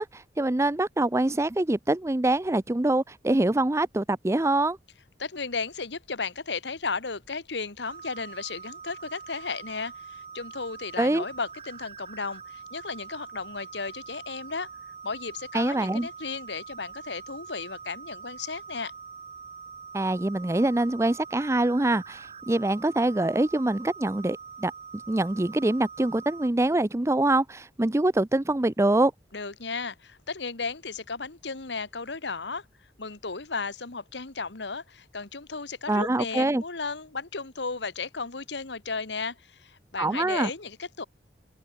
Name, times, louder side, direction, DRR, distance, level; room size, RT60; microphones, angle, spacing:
voice 1, 0.0-4.8 11.0-11.2 15.5-16.1 19.9-24.7 25.1-29.1 35.9-36.6 40.0-40.5, right 2 dB, 15° right, 0.5 m, -24 dB
voice 2, 5.2-14.7 15.0-18.9 29.3-32.6 33.0-41.0, left 4 dB, 75° left, 1.6 m, -34 dB
sound 1, 7.8-26.5, right 6 dB, 35° right, 6.8 m, -44 dB
head